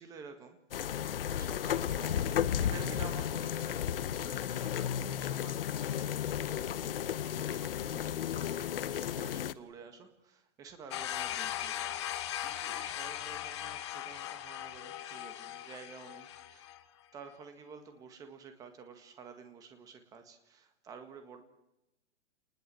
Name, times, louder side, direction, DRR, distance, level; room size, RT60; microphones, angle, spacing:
voice 1, 0.0-16.7 17.1-21.4, right 5 dB, 10° right, 7 dB, 1.7 m, -51 dB
sound 1, 0.7-9.5, left 9 dB, 50° left, 1.0 m, -33 dB
sound 2, 10.9-16.8, left 12 dB, 25° left, 1.0 m, -39 dB
30.0 x 20.0 x 7.7 m, 0.91 s
hypercardioid pair, 180°, 36 cm